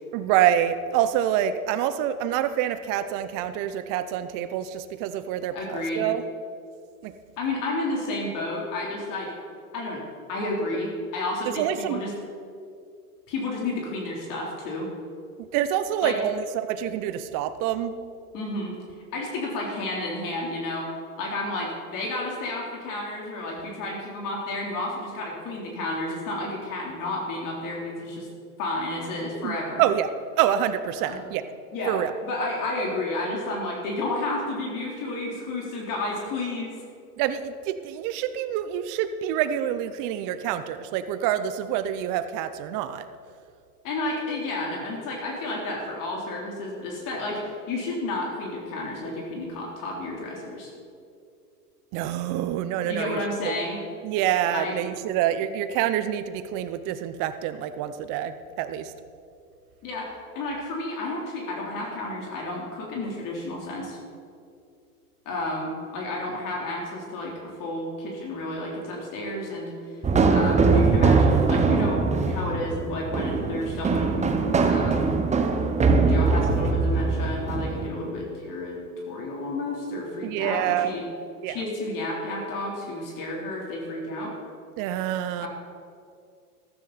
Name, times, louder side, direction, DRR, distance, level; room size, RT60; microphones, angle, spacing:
voice 1, 0.1-6.2 7.0-7.1 11.6-12.0 15.4-18.0 29.4-30.1 30.4-31.4 31.9-32.1 37.2-43.1 51.9-53.2 53.4-53.6 54.0-58.9 80.2-80.9 81.4-81.6 84.8-85.5, right 11 dB, 45° right, 11 dB, 1.0 m, -26 dB
voice 2, 5.5-6.0 7.4-9.3 9.7-10.0 10.3-12.1 13.3-14.9 16.0-16.2 18.3-18.7 19.1-20.9 21.2-28.3 28.6-29.9 31.0-31.2 31.7-32.0 32.2-36.7 43.8-50.7 52.8-53.8 54.5-54.7 59.8-60.1 60.4-64.0 65.3-67.3 67.6-69.7 70.3-75.2 76.1-78.8 79.1-81.0 81.5-84.3 85.4-85.5, left 2 dB, 45° left, -2 dB, 3.8 m, -31 dB
sound 1, 70.0-77.9, right 4 dB, 15° right, 1.1 m, -22 dB
14.0 x 13.0 x 4.3 m, 2.4 s
hypercardioid pair, 100°, 45 cm